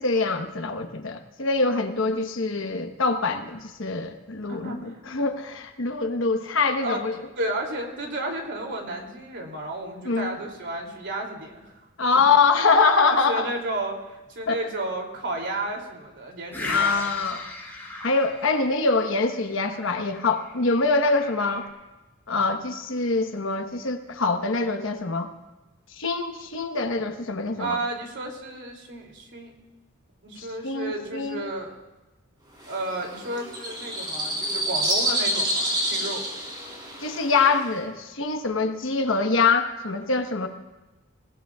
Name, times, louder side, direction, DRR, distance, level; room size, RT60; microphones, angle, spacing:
voice 1, 0.0-7.1 10.0-10.4 12.0-13.5 14.5-14.6 16.6-17.4 18.0-21.7 22.3-25.3 26.0-27.8 30.4-31.4 37.0-40.5, left 4 dB, 65° left, 6 dB, 1.2 m, -24 dB
voice 2, 4.5-5.0 6.8-7.0 7.4-11.8 13.3-17.0 27.6-29.5 30.2-31.8 32.7-36.3, right 1 dB, 60° right, 1 dB, 2.9 m, -32 dB
sound 1, 16.5-21.7, left 2 dB, 10° left, 4.5 m, -38 dB
sound 2, 32.6-37.8, right 1 dB, 20° right, 4.0 m, -28 dB
27.5 x 17.0 x 2.4 m, 1.1 s
head